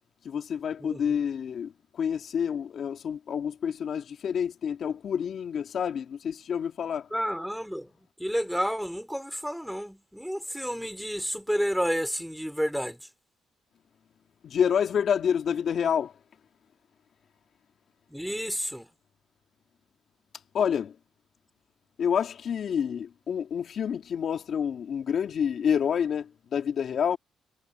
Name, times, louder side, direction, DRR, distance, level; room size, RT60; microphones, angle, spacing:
voice 1, 0.2-7.1 14.4-16.1 20.5-21.0 22.0-27.2, left 8 dB, 60° left, 2.4 m, -28 dB
voice 2, 0.8-1.1 7.1-7.9 8.2-13.0 18.1-18.9, equal, ahead, 3.0 m, -30 dB
cardioid pair, 90°, 0 cm